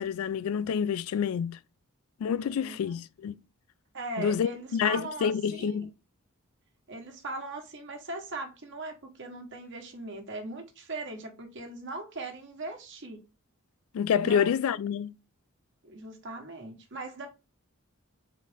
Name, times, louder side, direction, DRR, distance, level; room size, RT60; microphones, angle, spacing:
voice 1, 0.0-1.6 2.2-3.4 4.2-5.9 13.9-15.1, left 7 dB, 70° left, 0.3 m, -28 dB
voice 2, 2.4-3.0 3.9-5.9 6.9-13.2 14.2-14.5 15.8-17.3, right 2 dB, 60° right, 1.2 m, -39 dB
4.1 x 3.7 x 3.4 m
head